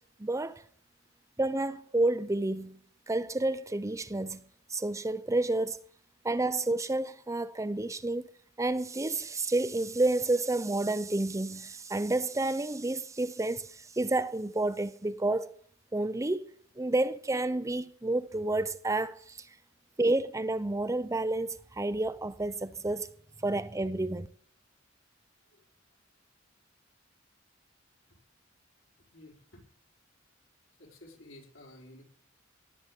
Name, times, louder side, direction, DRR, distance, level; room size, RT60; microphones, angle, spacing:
voice 1, 0.2-0.6 1.4-2.8 3.1-4.4 4.7-5.8 6.2-8.3 8.6-13.7 14.0-15.5 15.9-16.4 16.8-19.4 20.0-23.1 23.4-24.3, right 2 dB, 15° right, 0.6 m, -30 dB
voice 2, 29.1-29.7 30.8-32.0, left 1 dB, 75° left, 4.8 m, -52 dB
18.5 x 7.3 x 8.2 m
head